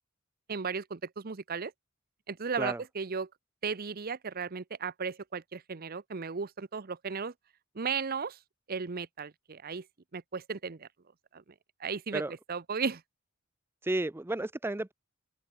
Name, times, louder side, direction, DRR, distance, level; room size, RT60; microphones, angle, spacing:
voice 1, 0.5-1.7 2.3-3.3 3.6-7.3 7.7-8.4 8.7-9.8 10.1-10.9 11.3-11.4 11.8-13.0, right 5 dB, 45° right, 0.7 m, -35 dB
voice 2, 13.8-14.9, right 1 dB, 10° right, 0.5 m, -32 dB
open air
head